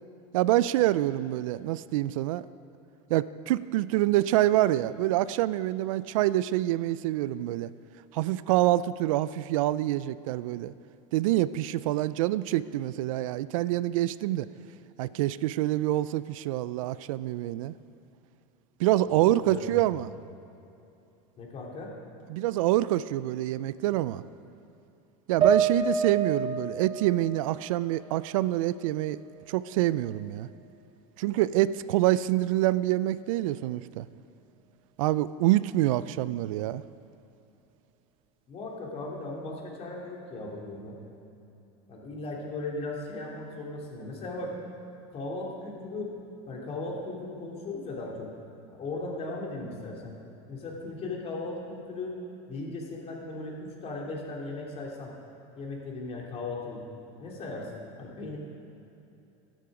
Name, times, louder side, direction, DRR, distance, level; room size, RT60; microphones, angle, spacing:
voice 1, 0.3-2.5 3.1-7.7 8.1-10.7 11.1-14.5 15.0-17.8 18.8-20.1 22.3-24.2 25.3-29.2 29.5-30.5 31.2-34.1 35.0-36.8, right 15 dB, 85° right, 16 dB, 0.4 m, -26 dB
voice 2, 19.1-19.6 21.4-21.9 38.5-41.0 41.9-44.5 45.1-46.1 46.5-48.3 48.7-50.1 50.5-52.2 52.5-55.1 55.5-56.8 57.2-58.4, left 2 dB, 40° left, -2 dB, 3.0 m, -37 dB
sound 1, 25.4-28.8 29.2-30.2, right 6 dB, 30° right, 1.0 m, -30 dB
12.5 x 11.5 x 5.0 m, 2.8 s
supercardioid pair, 115°, 17 cm